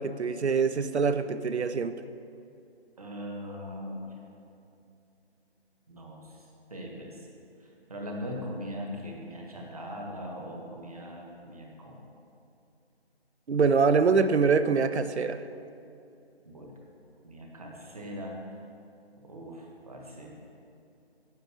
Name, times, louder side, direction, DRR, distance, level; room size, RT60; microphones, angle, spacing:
voice 1, 0.0-2.0 13.5-15.4, right 5 dB, 85° right, 11 dB, 0.7 m, -24 dB
voice 2, 3.0-4.2 5.9-6.4 6.7-7.3 7.6-12.0 16.4-16.7 17.2-18.4 19.2-20.4, equal, 35° right, -1 dB, 1.6 m, -40 dB
9.5 x 8.4 x 6.2 m, 2.6 s
figure-of-eight pair, 180°, 32 cm